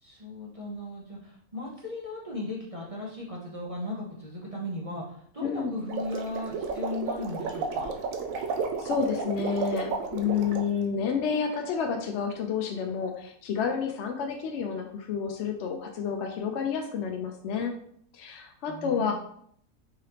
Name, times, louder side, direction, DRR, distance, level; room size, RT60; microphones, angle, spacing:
voice 1, 0.0-7.9 18.7-19.1, left 2 dB, 35° right, -4 dB, 0.6 m, -37 dB
voice 2, 5.4-5.8 8.8-17.7 18.1-19.1, left 6 dB, 65° left, 3 dB, 0.7 m, -30 dB
sound 1, 5.8-10.7, right 5 dB, 70° right, 0.9 m, -32 dB
4.7 x 3.3 x 2.9 m, 0.65 s
omnidirectional pair, 1.5 m